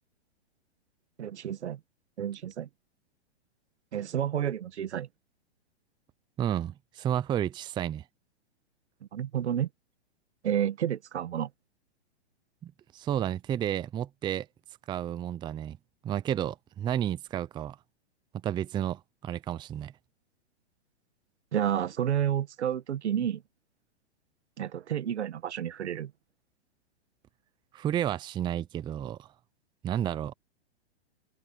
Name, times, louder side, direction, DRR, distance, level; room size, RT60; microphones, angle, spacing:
voice 1, 1.2-1.8 2.2-2.7 3.9-5.1 9.1-9.7 10.4-11.5 21.5-23.4 24.6-26.1, right 10 dB, 80° right, 1.7 m, -30 dB
voice 2, 6.4-8.0 12.6-14.5 14.9-15.8 16.0-17.8 18.4-19.9 27.7-29.3 29.8-30.3, right 10 dB, 15° right, 0.6 m, -31 dB
hypercardioid pair, 135°, 33 cm